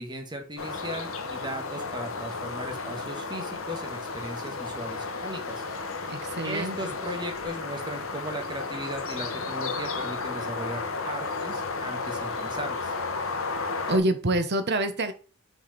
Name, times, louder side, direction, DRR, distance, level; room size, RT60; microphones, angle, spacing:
voice 1, 0.0-5.6 6.4-12.9, right 1 dB, 20° right, 1.6 m, -37 dB
sound 1, 0.6-14.0, left 4 dB, 65° left, 1.3 m, -33 dB
voice 2, 6.1-6.9 13.9-15.1, right 1 dB, 50° right, 1.0 m, -26 dB
6.3 x 4.8 x 4.1 m
head